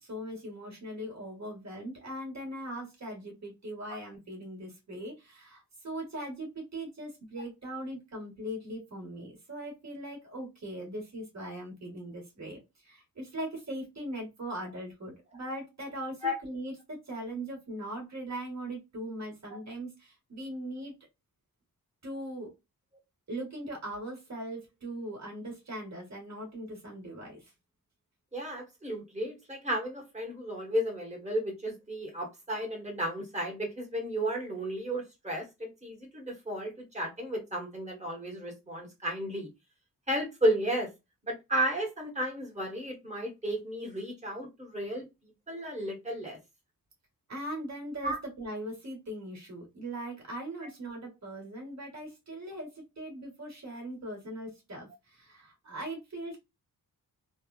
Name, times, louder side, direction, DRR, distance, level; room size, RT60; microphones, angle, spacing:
voice 1, 0.0-21.0 22.0-22.5 23.3-27.5 47.3-56.4, right 1 dB, 45° right, 0 dB, 1.8 m, -40 dB
voice 2, 28.3-39.5 40.1-40.9 41.2-45.0 45.5-46.4 48.0-48.2, equal, 20° right, 1 dB, 1.4 m, -33 dB
3.4 x 2.4 x 2.4 m, 0.23 s
wide cardioid pair, 120°, 36 cm